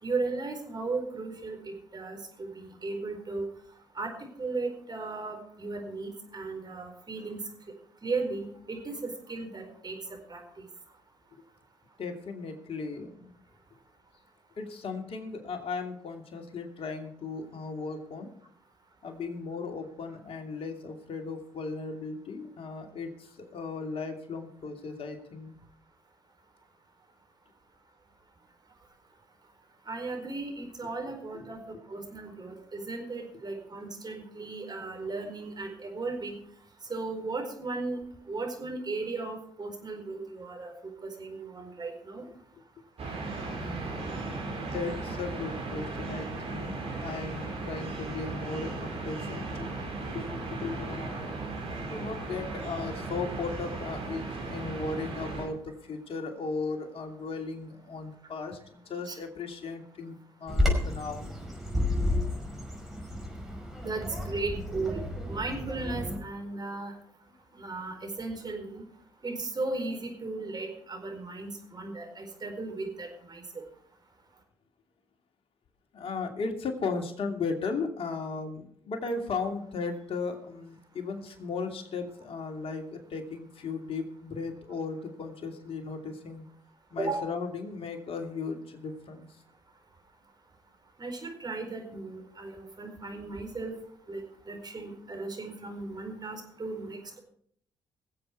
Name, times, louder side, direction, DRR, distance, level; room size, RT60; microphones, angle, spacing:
voice 1, 0.0-3.5 3.9-7.5 8.0-10.7 29.9-31.6 31.9-36.4 36.9-38.0 38.3-42.2 59.1-59.2 63.8-65.0 65.3-66.9 67.5-68.8 69.2-73.6 87.0-87.2 91.0-93.7 94.1-97.2, right 3 dB, 35° right, 3 dB, 4.5 m, -36 dB
voice 2, 12.0-13.3 14.6-18.3 19.0-25.5 31.3-31.5 43.6-51.4 51.7-61.3 75.9-86.5 86.9-89.3, left 4 dB, 55° left, 4 dB, 2.8 m, -36 dB
sound 1, 43.0-55.4, right 3 dB, 60° right, 4.8 m, -36 dB
Bird vocalization bird call bird song, 60.5-66.2, left 1 dB, ahead, 5.3 m, -31 dB
20.5 x 7.8 x 4.6 m, 0.64 s
hypercardioid pair, 50°, 12 cm